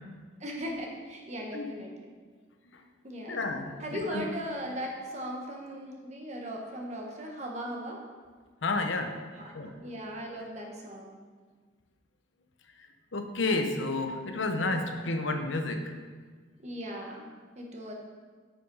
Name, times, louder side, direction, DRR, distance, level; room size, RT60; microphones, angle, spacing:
voice 1, 0.4-2.1 3.0-3.4 3.8-8.0 9.3-11.2 14.7-14.8 16.6-17.9, equal, 35° right, 0 dB, 1.5 m, -38 dB
voice 2, 3.3-4.3 8.6-9.1 9.5-9.7 13.1-15.9, left 2 dB, 80° left, 6 dB, 1.0 m, -30 dB
9.2 x 6.9 x 5.5 m, 1.5 s
head